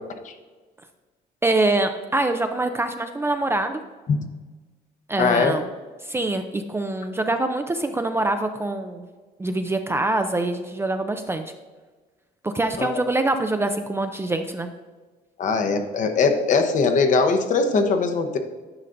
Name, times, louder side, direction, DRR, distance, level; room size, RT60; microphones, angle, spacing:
voice 1, 1.4-3.8 5.1-5.7 6.0-9.1 9.4-11.5 12.4-14.7, right 2 dB, 15° right, 7 dB, 0.4 m, -24 dB
voice 2, 5.2-5.5 12.8-13.0 15.4-18.4, left 4 dB, 50° left, 6 dB, 0.9 m, -21 dB
9.8 x 5.5 x 2.6 m, 1.3 s
cardioid pair, 110°, 17 cm